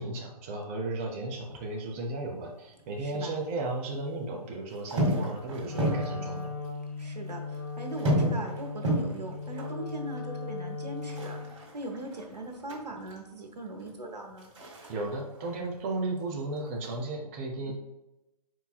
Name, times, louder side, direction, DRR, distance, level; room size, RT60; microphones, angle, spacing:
voice 1, 0.0-6.6 14.9-17.7, right 2 dB, 20° right, 0 dB, 0.6 m, -34 dB
sound 1, 1.4-3.0 3.3-4.2 4.7-6.7 7.0-7.1 7.3-13.2 13.6-16.2 16.5-17.0, right 1 dB, 50° right, 1.7 m, -33 dB
voice 2, 3.0-3.4 7.0-14.5 17.7-17.8, right 1 dB, 85° right, 3 dB, 1.1 m, -40 dB
Wind instrument woodwind instrument, 5.6-11.6, left 4 dB, 5° left, 0.8 m, -38 dB
5.1 x 4.6 x 2.3 m, 0.95 s
figure-of-eight pair, 145°, 21 cm